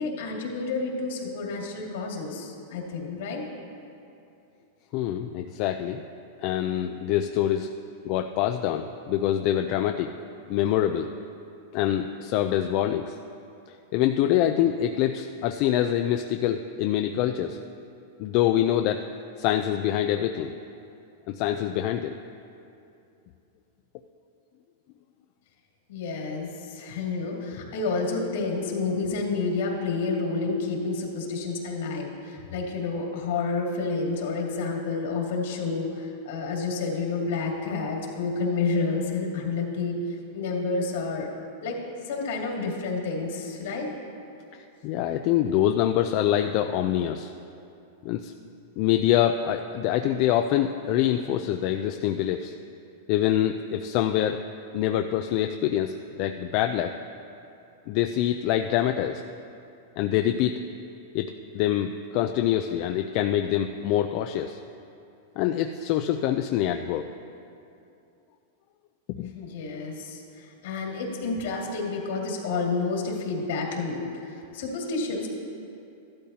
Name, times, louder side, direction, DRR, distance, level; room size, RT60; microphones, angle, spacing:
voice 1, 0.0-3.4 25.9-41.3 41.6-43.9 69.3-75.3, left 3 dB, 75° left, -1 dB, 2.3 m, -30 dB
voice 2, 4.9-6.0 6.4-7.7 8.0-10.1 10.5-11.1 11.7-13.2 13.7-17.6 18.2-19.1 19.4-20.5 21.3-22.2 44.5-47.3 48.0-48.3 48.8-52.5 53.1-54.4 54.7-56.9 57.9-59.2 60.0-60.6 61.1-64.6 65.4-67.1 69.1-69.3, left 11 dB, 50° left, 6 dB, 0.4 m, -25 dB
14.0 x 12.0 x 2.9 m, 2.6 s
supercardioid pair, 135°, 0 cm